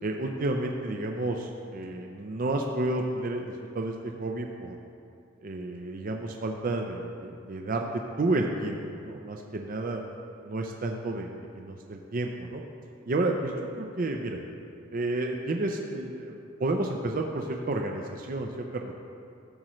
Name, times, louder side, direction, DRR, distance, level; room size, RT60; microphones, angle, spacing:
voice 1, 0.0-4.8 5.4-10.0 10.4-11.3 11.6-12.6 13.1-14.4 14.9-19.0, right 2 dB, 45° right, 2 dB, 0.5 m, -31 dB
12.5 x 7.6 x 3.1 m, 2.5 s
head